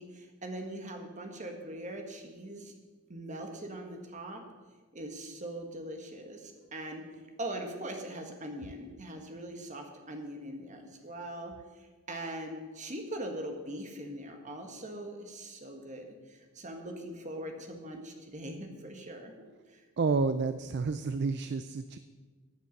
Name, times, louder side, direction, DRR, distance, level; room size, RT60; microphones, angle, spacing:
voice 1, 0.0-2.7 3.1-4.4 4.9-7.0 7.4-19.3 19.7-19.8, right 1 dB, 35° right, 4 dB, 1.6 m, -41 dB
voice 2, 20.0-22.0, right 4 dB, 50° right, 11 dB, 0.4 m, -30 dB
15.0 x 8.9 x 5.3 m, 1.4 s
head